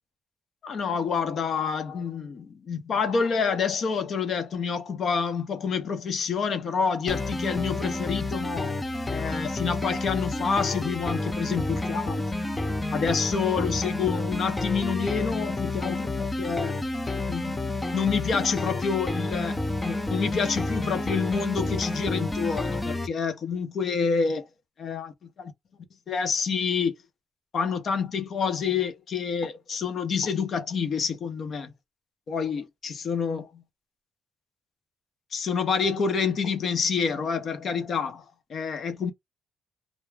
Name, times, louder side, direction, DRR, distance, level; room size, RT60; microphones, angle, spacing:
voice 1, 0.6-8.8 9.1-12.2 12.9-16.8 17.3-17.6 17.9-19.6 19.8-24.5 24.8-25.1 25.4-25.5 26.1-26.9 27.5-31.7 32.3-33.6 35.3-38.2 38.5-39.1, left 6 dB, 55° left, 0.7 m, -28 dB
sound 1, 7.1-23.1, left 2 dB, 15° left, 0.5 m, -30 dB
2.2 x 2.0 x 3.2 m
cardioid pair, 90°, 0 cm